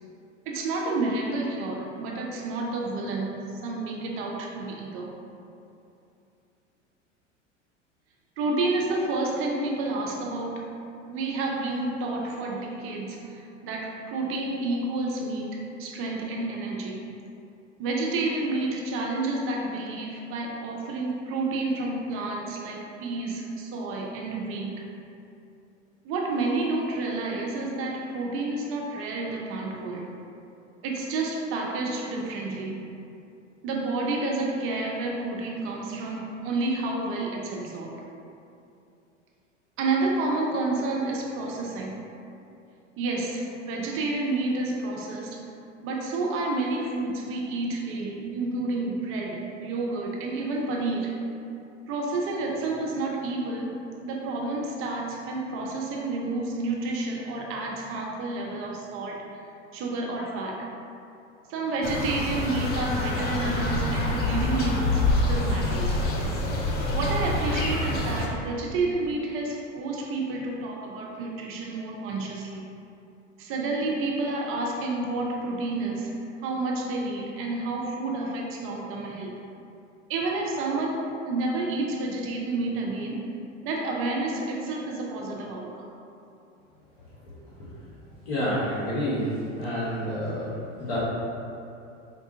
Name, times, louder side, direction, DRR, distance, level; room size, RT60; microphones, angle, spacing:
voice 1, 0.5-5.1 8.4-10.8 11.1-17.0 17.8-24.8 26.0-30.1 30.8-32.9 33.6-38.0 39.8-42.0 43.0-45.4 45.8-51.3 51.9-59.2 59.7-60.7 61.5-66.0 66.9-72.6 73.4-79.4 80.1-83.4 83.6-85.9 89.5-89.6, right 2 dB, 35° right, -1 dB, 0.5 m, -30 dB
sound 1, 61.8-68.3, left 2 dB, 25° left, 0.5 m, -26 dB
voice 2, 87.0-87.9 88.2-90.5 90.8-91.0, equal, 65° left, -10 dB, 1.1 m, -30 dB
4.3 x 2.3 x 2.7 m, 2.7 s
hypercardioid pair, 90°, 37 cm